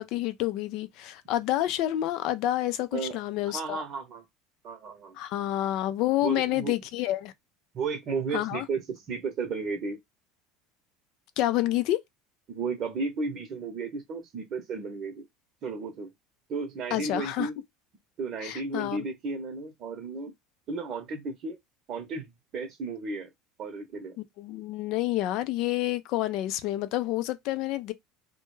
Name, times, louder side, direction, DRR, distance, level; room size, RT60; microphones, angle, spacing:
voice 1, 0.0-3.8 5.2-7.3 8.3-8.7 11.4-12.0 16.9-17.5 18.4-19.0 24.2-27.9, left 14 dB, 65° left, 0.4 m, -29 dB
voice 2, 3.4-4.2 4.6-5.2 6.2-6.7 7.7-10.0 12.5-15.3 15.6-16.1 16.5-17.6 18.2-20.3 20.7-21.6 21.9-23.3 23.6-24.2, right 4 dB, 50° right, 0.8 m, -34 dB
2.2 x 2.1 x 3.1 m
supercardioid pair, 95°, 0 cm